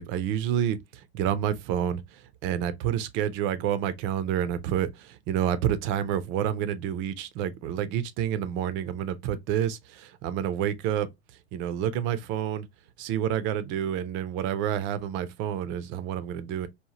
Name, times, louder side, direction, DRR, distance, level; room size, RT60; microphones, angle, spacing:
voice 1, 0.0-11.1 11.5-12.7 13.0-16.7, right 10 dB, 40° right, 0.4 m, -29 dB
2.8 x 2.1 x 2.8 m
hypercardioid pair, 110°, 32 cm